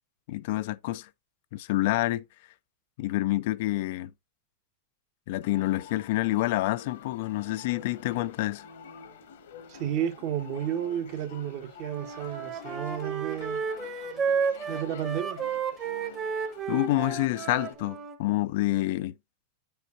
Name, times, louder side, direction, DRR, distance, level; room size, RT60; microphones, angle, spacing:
voice 1, 0.3-1.1 1.5-2.2 3.0-4.1 5.3-8.7 16.7-19.1, left 17 dB, 65° left, 0.4 m, -28 dB
sound 1, 5.4-17.7, left 6 dB, 80° left, 1.5 m, -47 dB
voice 2, 9.7-13.6 14.7-15.4, right 10 dB, 55° right, 1.5 m, -32 dB
Wind instrument woodwind instrument, 11.9-18.2, right 6 dB, 30° right, 1.2 m, -32 dB
8.7 x 5.4 x 2.7 m
hypercardioid pair, 125°, 0 cm